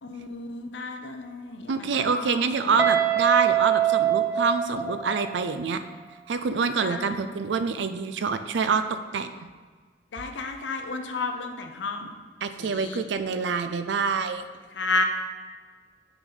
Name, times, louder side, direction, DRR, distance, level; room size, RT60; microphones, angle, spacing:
voice 1, 0.0-2.5 6.8-7.1 10.1-12.1 12.6-13.0 14.7-15.0, left 3 dB, 80° left, 5 dB, 0.7 m, -32 dB
voice 2, 1.7-5.8 6.3-9.3 12.4-14.5, right 5 dB, 75° right, 10 dB, 0.4 m, -26 dB
Guitar, 2.8-5.6, right 10 dB, 15° right, 0.6 m, -24 dB
6.1 x 4.0 x 5.1 m, 1.5 s
head